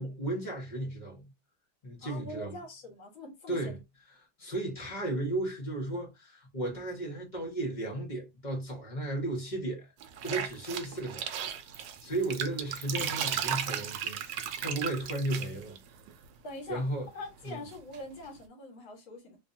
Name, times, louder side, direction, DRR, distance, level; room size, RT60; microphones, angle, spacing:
voice 1, 0.0-1.3 1.8-2.5 3.5-3.8 4.2-9.9 10.2-15.8 16.7-17.1 17.4-17.6, right 2 dB, 25° left, 1.1 m, -35 dB
voice 2, 2.0-3.8 16.4-16.8 17.1-19.4, left 1 dB, 70° left, 2.2 m, -43 dB
sound 1, 10.0-16.2 17.2-18.0, right 8 dB, 70° right, 1.2 m, -35 dB
3.9 x 2.6 x 2.7 m
omnidirectional pair, 2.3 m